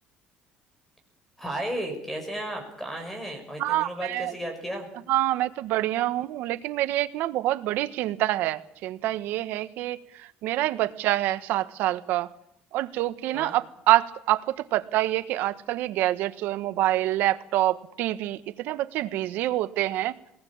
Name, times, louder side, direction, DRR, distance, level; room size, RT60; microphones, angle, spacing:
voice 1, 1.4-4.9 13.3-13.6, right 1 dB, 5° left, 5 dB, 6.5 m, -34 dB
voice 2, 3.6-4.3 5.1-12.3 12.7-20.1, right 15 dB, 75° right, 12 dB, 1.3 m, -26 dB
22.5 x 20.0 x 8.8 m, 0.74 s
cardioid pair, 130°, 3 cm